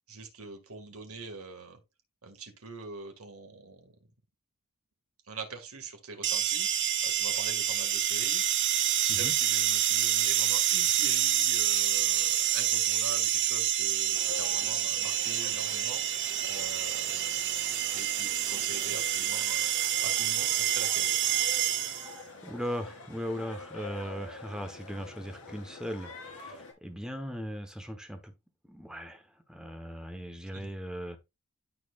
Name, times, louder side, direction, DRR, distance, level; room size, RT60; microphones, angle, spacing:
voice 1, 0.1-1.8 2.2-3.9 5.3-8.6 9.0-17.3 17.9-21.2 30.5-30.7, right 4 dB, 75° right, 2.1 m, -44 dB
sound 1, 6.2-22.2, right 11 dB, 55° right, 0.8 m, -28 dB
sound 2, 14.1-26.7, left 3 dB, 75° left, 2.6 m, -46 dB
voice 2, 22.4-28.3 28.7-31.2, equal, 5° right, 1.1 m, -38 dB
12.5 x 4.6 x 2.5 m
head